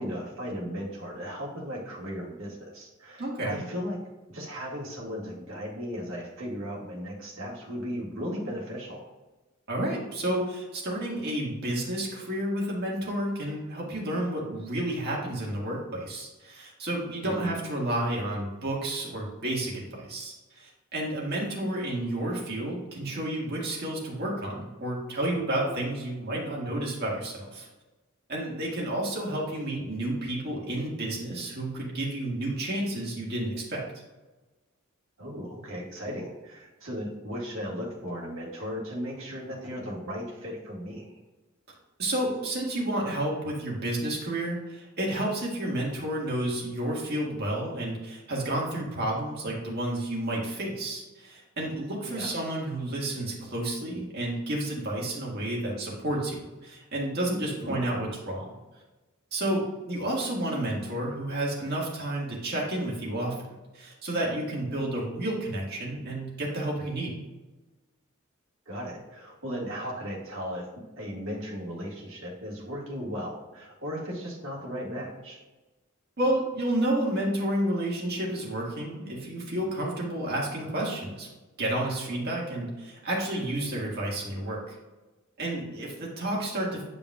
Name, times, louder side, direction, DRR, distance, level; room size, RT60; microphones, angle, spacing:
voice 1, 0.0-4.0 4.3-9.1 17.2-17.6 35.2-41.2 52.1-52.3 57.6-57.8 68.7-75.4, equal, 65° right, -3 dB, 1.8 m, -36 dB
voice 2, 3.2-3.7 9.7-27.7 28.3-33.8 42.0-58.5 59.3-63.5 63.7-67.2 76.2-81.3 81.6-84.8 85.4-86.9, right 1 dB, 50° right, -3 dB, 1.8 m, -31 dB
9.5 x 5.1 x 2.4 m, 1.2 s
head